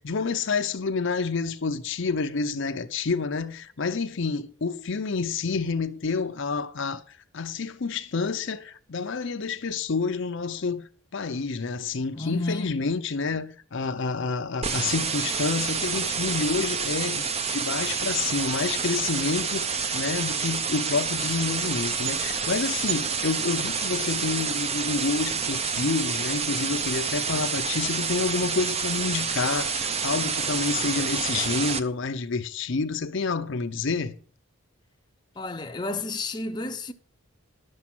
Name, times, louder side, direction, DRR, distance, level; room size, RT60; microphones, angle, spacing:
voice 1, 0.0-10.8 11.1-17.3 17.5-34.2, left 4 dB, 60° left, 0.6 m, -28 dB
voice 2, 12.2-12.8 35.4-36.9, left 2 dB, 20° left, 0.7 m, -31 dB
sound 1, 14.6-31.8, right 5 dB, 30° right, 0.7 m, -28 dB
11.0 x 7.3 x 6.0 m
head